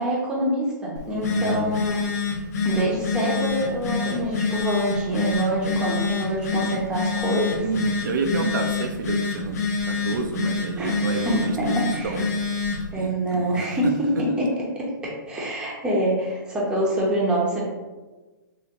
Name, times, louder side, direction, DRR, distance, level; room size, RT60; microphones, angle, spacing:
voice 1, 0.0-2.1 2.6-7.7 10.8-12.1 12.9-14.3 14.7-17.6, right 1 dB, 10° right, -5 dB, 0.9 m, -25 dB
Telephone, 1.0-12.9, left 4 dB, 50° left, 1.2 m, -27 dB
voice 2, 1.3-1.9 7.6-11.7 12.0-13.7, right 4 dB, 70° right, 3 dB, 0.6 m, -29 dB
6.4 x 2.8 x 2.9 m, 1.2 s
hypercardioid pair, 155°, 11 cm